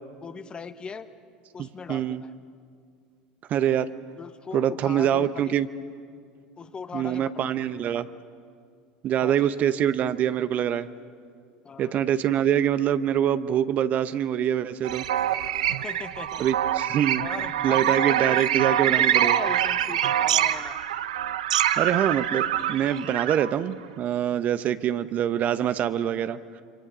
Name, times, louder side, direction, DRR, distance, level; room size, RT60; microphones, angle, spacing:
voice 1, 0.2-1.1 1.5-2.3 4.2-5.5 6.6-7.3 7.6-7.7 9.2-9.6 11.6-12.0 15.7-16.4 17.2-20.8, left 5 dB, 25° left, 11 dB, 1.2 m, -39 dB
voice 2, 1.6-2.2 3.5-3.9 4.5-5.7 6.9-8.1 9.0-10.9 11.8-15.0 16.4-17.2 17.6-19.4 21.8-26.4, right 10 dB, 45° right, 13 dB, 0.8 m, -25 dB
sound 1, 14.8-23.5, right 11 dB, 75° right, 0.7 m, -25 dB
27.5 x 24.5 x 6.2 m, 2.2 s
hypercardioid pair, 75°, 4 cm